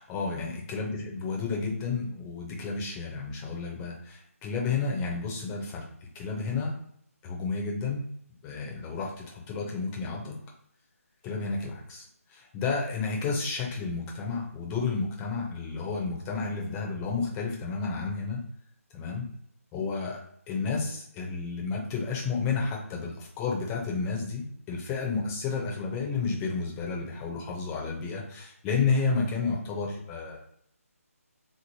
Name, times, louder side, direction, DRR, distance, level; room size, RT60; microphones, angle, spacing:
voice 1, 0.1-5.9 6.1-6.7 7.2-8.1 8.4-10.4 11.2-12.1 12.3-18.4 18.9-19.3 19.7-20.2 20.5-30.4, left 4 dB, 10° left, -2 dB, 0.5 m, -31 dB
3.7 x 3.0 x 2.7 m, 0.69 s
figure-of-eight pair, 165°, 8 cm